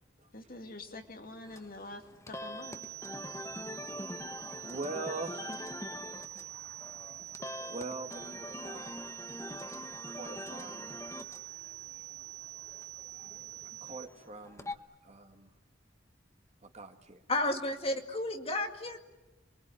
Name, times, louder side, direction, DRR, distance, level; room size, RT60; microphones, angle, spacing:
voice 1, 0.3-2.0 2.4-2.8, left 2 dB, 55° left, 2.5 m, -45 dB
sound 1, 1.5-14.7, left 2 dB, 15° left, 1.1 m, -44 dB
sound 2, 2.6-14.0, right 14 dB, 15° right, 6.8 m, -45 dB
voice 2, 4.2-6.7 7.0-8.9 10.1-11.1 12.2-12.3 13.8-15.5 16.6-17.2, right 3 dB, 40° right, 2.1 m, -44 dB
voice 3, 17.3-19.0, left 2 dB, 35° left, 2.2 m, -32 dB
27.5 x 23.0 x 9.2 m
head